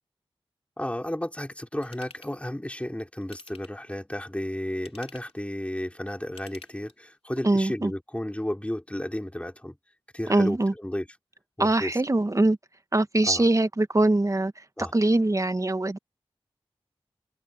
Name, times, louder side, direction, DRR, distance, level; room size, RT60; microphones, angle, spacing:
voice 1, 0.8-9.8 10.1-10.6 10.8-11.1 11.6-11.9 13.3-13.4 14.8-14.9, left 1 dB, 10° left, 3.3 m, -33 dB
Ratchet pawl / Tools, 1.8-2.3 3.2-3.9 4.7-5.4 6.2-7.2 7.7-7.8, left 4 dB, 80° left, 3.2 m, -50 dB
voice 2, 7.4-7.9 10.3-10.7 11.6-12.6 12.9-14.6 14.9-16.0, right 2 dB, 30° right, 1.2 m, -22 dB
cardioid pair, 45°, 10 cm